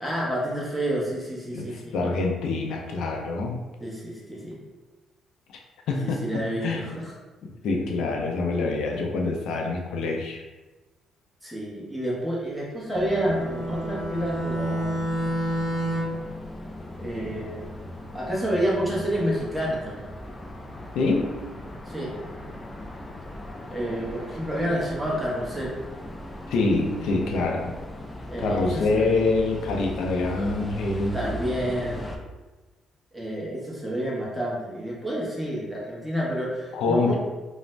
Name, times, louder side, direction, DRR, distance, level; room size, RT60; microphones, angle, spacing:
voice 1, 0.0-2.0 3.8-4.6 6.0-7.1 11.4-14.9 17.0-17.7 18.1-20.1 21.9-22.1 23.7-25.7 28.3-29.1 31.1-32.1 33.1-37.2, equal, 5° right, -5 dB, 0.8 m, -29 dB
voice 2, 1.5-3.6 5.5-5.6 5.9-6.8 7.4-10.4 20.9-21.4 26.5-27.7 28.4-31.3 36.7-37.2, left 3 dB, 80° left, 1 dB, 0.5 m, -26 dB
sound 1, 12.9-32.2, left 1 dB, 15° left, 0.3 m, -38 dB
Bowed string instrument, 12.9-16.3, equal, 45° right, 0.5 m, -29 dB
2.5 x 2.0 x 3.2 m, 1.2 s
cardioid pair, 105°, 0 cm